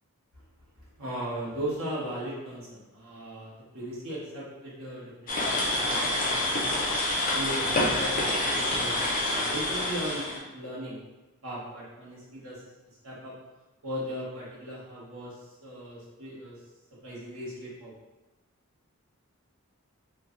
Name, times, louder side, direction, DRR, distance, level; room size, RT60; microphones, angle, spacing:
voice 1, 1.0-6.8 7.3-11.0 11.4-13.3 13.8-16.6 17.0-17.9, equal, 70° right, -8 dB, 1.2 m, -38 dB
sound 1, 5.3-10.4, left 1 dB, 35° left, 0.6 m, -27 dB
3.2 x 2.3 x 3.7 m, 1.1 s
head